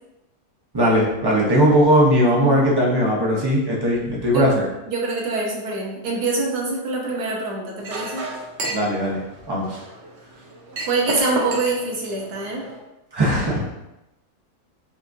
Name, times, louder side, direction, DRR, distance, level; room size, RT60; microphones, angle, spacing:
voice 1, 0.7-4.6 8.7-9.2 9.5-9.8 13.1-13.6, equal, 25° right, -4 dB, 0.5 m, -18 dB
voice 2, 4.9-8.3 10.8-12.6, right 3 dB, 85° right, -2 dB, 1.4 m, -25 dB
Chink clink, 7.8-12.8, right 2 dB, 60° right, 0.8 m, -32 dB
5.4 x 2.5 x 2.6 m, 0.94 s
omnidirectional pair, 1.6 m